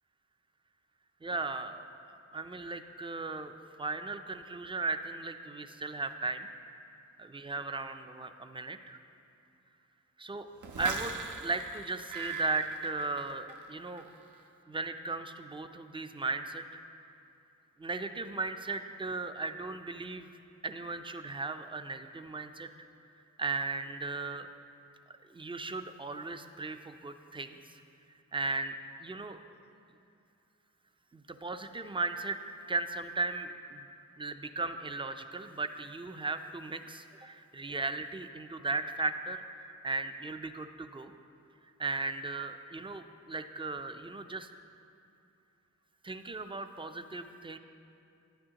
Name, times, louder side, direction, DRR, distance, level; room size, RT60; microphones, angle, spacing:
voice 1, 1.2-3.5 3.8-6.5 7.2-9.0 10.2-10.5 10.8-14.1 14.7-16.6 17.8-20.3 20.6-22.7 23.4-24.5 25.1-27.8 28.3-28.7 29.0-29.4 31.1-32.4 32.7-33.9 34.2-41.1 41.8-44.5 46.0-47.6, right 3 dB, 20° right, 8 dB, 0.4 m, -36 dB
sound 1, 10.6-13.7 14.0-14.4, right 5 dB, 80° right, 0.8 m, -40 dB
11.0 x 9.3 x 2.9 m, 2.6 s
wide cardioid pair, 75°, 29 cm